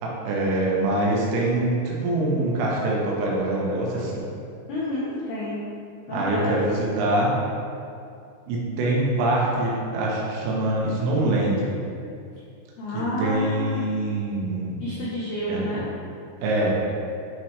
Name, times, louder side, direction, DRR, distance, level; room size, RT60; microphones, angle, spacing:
voice 1, 0.0-4.2 6.1-7.3 8.5-11.7 12.9-14.8 15.5-15.8 16.4-16.8, right 1 dB, 85° right, -4 dB, 3.7 m, -24 dB
voice 2, 4.7-5.6 6.1-6.6 12.8-13.9 14.8-15.9, left 1 dB, 80° left, -7 dB, 2.2 m, -29 dB
10.0 x 4.4 x 3.2 m, 2.5 s
omnidirectional pair, 5.7 m